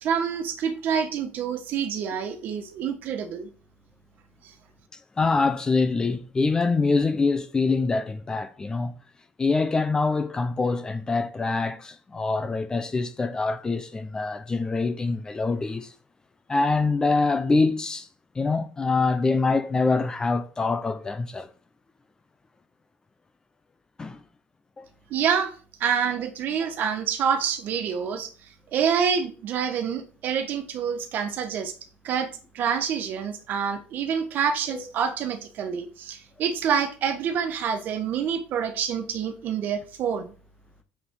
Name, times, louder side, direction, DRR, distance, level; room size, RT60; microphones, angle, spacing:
voice 1, 0.0-3.5 25.1-25.5 25.8-28.3 28.7-31.7 32.0-40.3, right 7 dB, 50° right, 1.5 m, -27 dB
voice 2, 5.2-8.9 9.4-15.9 16.5-18.1 18.3-21.5 24.0-24.2 24.8-24.9 34.7-34.8, left 3 dB, 15° left, 0.8 m, -24 dB
7.3 x 6.8 x 3.9 m
cardioid pair, 145°, 4 cm